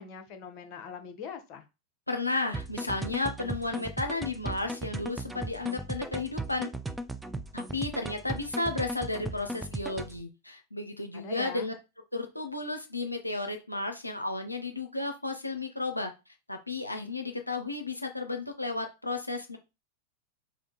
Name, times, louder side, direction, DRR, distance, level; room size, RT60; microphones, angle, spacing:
voice 1, 0.0-1.7 11.1-11.7, left 6 dB, 40° left, 6 dB, 0.7 m, -42 dB
voice 2, 2.1-6.7 7.5-11.7 12.1-16.1 16.5-19.6, left 2 dB, 85° left, 5 dB, 0.5 m, -33 dB
sound 1, 2.5-10.2, right 2 dB, 5° right, 0.4 m, -37 dB
3.5 x 2.5 x 3.9 m, 0.27 s
figure-of-eight pair, 90°, 0 cm